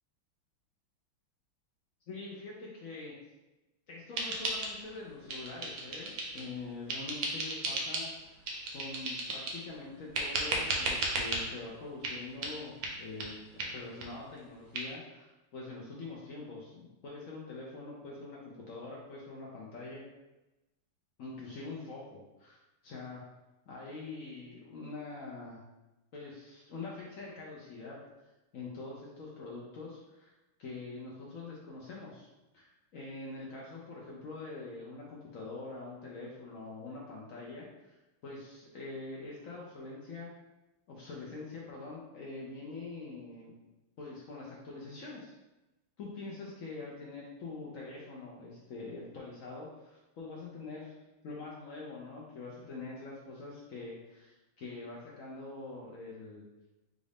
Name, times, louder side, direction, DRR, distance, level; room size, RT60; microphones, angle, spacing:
voice 1, 2.1-3.1 3.9-8.1 8.3-8.4 8.7-20.1 21.2-22.6 22.8-23.2 23.7-25.6 26.1-28.0 28.5-30.3 30.6-32.3 32.5-40.3 40.9-43.5 44.0-45.3 46.0-51.0 51.2-56.4, left 3 dB, 85° left, -4 dB, 0.7 m, -44 dB
sound 1, 4.2-5.0 5.3-6.5 6.9-8.1 8.5-9.6 10.1-11.4 12.0-12.2 12.4-12.5 12.8-12.9 13.2-13.3 13.6-13.7 14.0-14.1 14.4-14.5 14.7-14.8, right 2 dB, 65° right, 0.9 m, -34 dB
5.1 x 2.5 x 3.4 m, 1.0 s
omnidirectional pair, 2.3 m